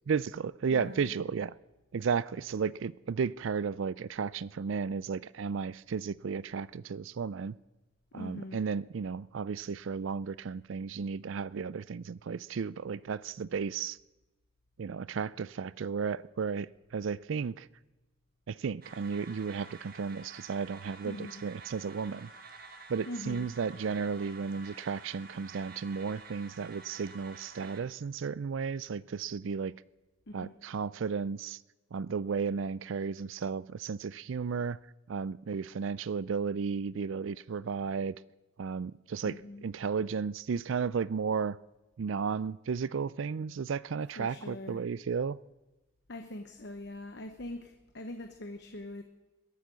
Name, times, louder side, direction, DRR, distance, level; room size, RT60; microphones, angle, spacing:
voice 1, 0.1-1.5 1.9-7.6 8.1-14.0 14.8-17.7 18.5-22.3 22.9-29.7 30.3-31.6 31.9-34.8 35.1-38.2 38.6-39.3 39.6-41.6 42.0-45.4, right 6 dB, 75° right, 0.4 m, -34 dB
voice 2, 0.7-1.1 8.1-8.6 21.0-21.4 23.1-23.5 30.3-30.6 39.2-39.7 44.2-44.8 46.1-49.0, left 1 dB, 55° left, 1.0 m, -42 dB
sound 1, 18.8-27.8, right 4 dB, 45° right, 1.5 m, -50 dB
21.5 x 8.4 x 6.3 m
head